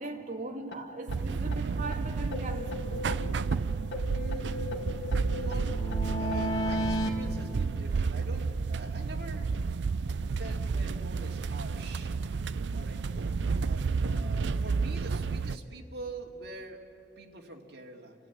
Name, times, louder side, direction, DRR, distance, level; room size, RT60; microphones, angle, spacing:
voice 1, 0.0-3.5, right 2 dB, 45° right, 1.8 m, -40 dB
sound 1, 0.7-0.8 1.1-1.2 1.5-1.6 1.9-2.0 2.3-3.6 3.9-7.1, equal, 85° left, 1.9 m, -34 dB
sound 2, 1.1-15.6, right 4 dB, 80° right, 0.5 m, -31 dB
voice 2, 4.1-4.8 5.3-5.7 6.2-9.5 10.3-12.1 12.7-16.8 17.2-18.1, right 2 dB, 65° right, 2.3 m, -45 dB
29.0 x 15.0 x 9.2 m
head